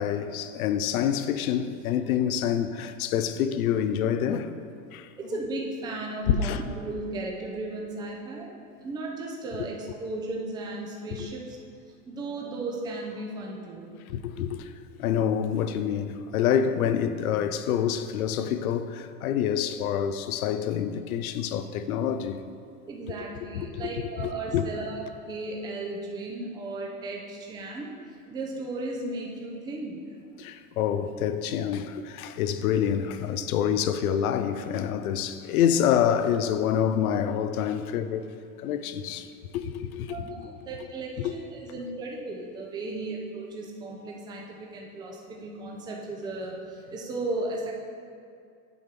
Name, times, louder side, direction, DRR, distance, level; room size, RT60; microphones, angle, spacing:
voice 1, 0.0-4.5 4.9-5.1 6.3-6.6 14.1-14.7 15.0-22.4 23.5-24.6 30.4-38.3 38.6-40.2 41.2-41.3, left 9 dB, 80° left, 0.6 m, -27 dB
voice 2, 5.2-8.5 8.8-11.6 12.1-13.9 22.8-30.0 40.1-47.7, right 2 dB, 10° right, 0.6 m, -35 dB
8.5 x 3.5 x 5.9 m
supercardioid pair, 140°, 42 cm